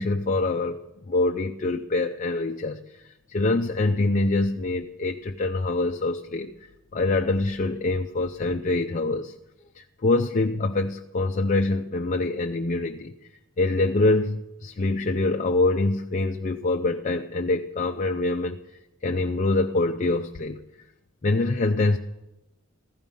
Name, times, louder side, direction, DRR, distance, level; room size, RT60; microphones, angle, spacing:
voice 1, 0.0-6.5 6.9-9.3 9.7-13.2 13.6-18.6 19.0-20.6 21.2-22.0, left 2 dB, 40° left, 4 dB, 0.5 m, -25 dB
15.0 x 13.0 x 5.4 m, 0.96 s
head